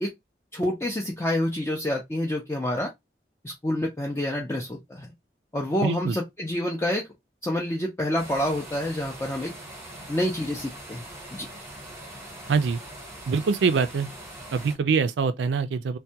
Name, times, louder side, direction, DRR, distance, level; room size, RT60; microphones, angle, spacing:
voice 1, 0.5-2.9 3.4-5.1 5.5-7.1 7.4-9.5 10.1-11.1 11.3-11.5, left 1 dB, 15° left, 0.4 m, -28 dB
voice 2, 5.8-6.2 12.5-12.8 13.3-14.1 14.5-16.0, right 5 dB, 85° right, 0.4 m, -24 dB
sound 1, 8.2-14.8, right 1 dB, 15° right, 0.9 m, -42 dB
2.2 x 2.2 x 2.7 m
head